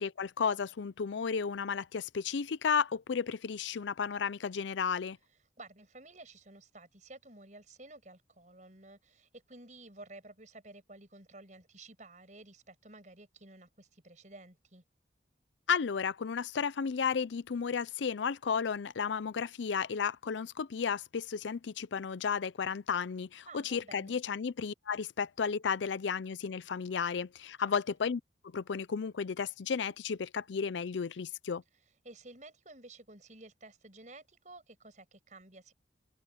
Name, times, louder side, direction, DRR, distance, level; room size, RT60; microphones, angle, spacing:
voice 1, 0.0-5.2 15.7-28.2 28.5-31.6, left 6 dB, 80° left, 0.5 m, -33 dB
voice 2, 5.6-14.8 23.5-24.2 27.6-27.7 32.0-35.7, right 2 dB, 40° right, 6.6 m, -53 dB
head